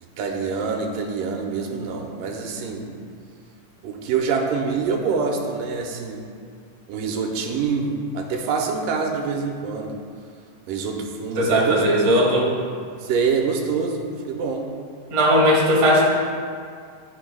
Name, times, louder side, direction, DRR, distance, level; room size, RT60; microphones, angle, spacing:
voice 1, 0.2-2.9 3.8-6.2 6.9-10.0 10.7-12.1 13.0-14.7, right 5 dB, 90° right, 2 dB, 2.3 m, -26 dB
voice 2, 11.4-12.5 15.1-16.1, equal, 55° right, -4 dB, 2.4 m, -17 dB
15.5 x 5.4 x 2.2 m, 2.2 s
omnidirectional pair, 3.8 m